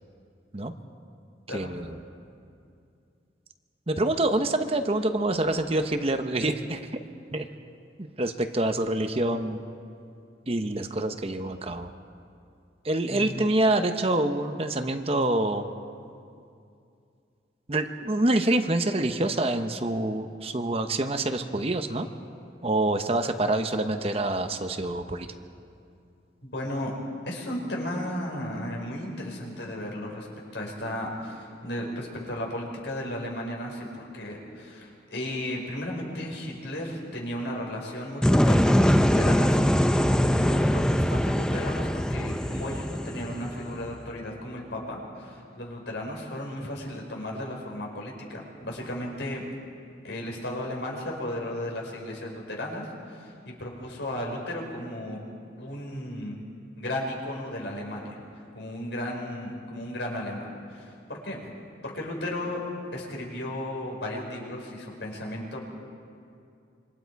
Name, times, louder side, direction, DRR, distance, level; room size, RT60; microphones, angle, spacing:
voice 1, 1.5-2.0 3.9-6.8 7.3-7.5 8.0-9.6 10.5-11.9 12.8-15.7 17.7-22.1 22.6-25.3 40.3-40.5, right 2 dB, 30° right, 7 dB, 0.9 m, -26 dB
voice 2, 13.0-13.4 26.4-26.9 27.2-30.3 30.5-39.6 40.5-49.4 50.0-55.2 55.6-56.4 56.8-58.2 58.5-61.5 61.8-62.6 62.9-65.6, left 1 dB, 70° left, -1 dB, 4.8 m, -35 dB
sound 1, 38.2-44.1, equal, 5° left, 0.5 m, -23 dB
26.5 x 25.0 x 4.7 m, 2.4 s
head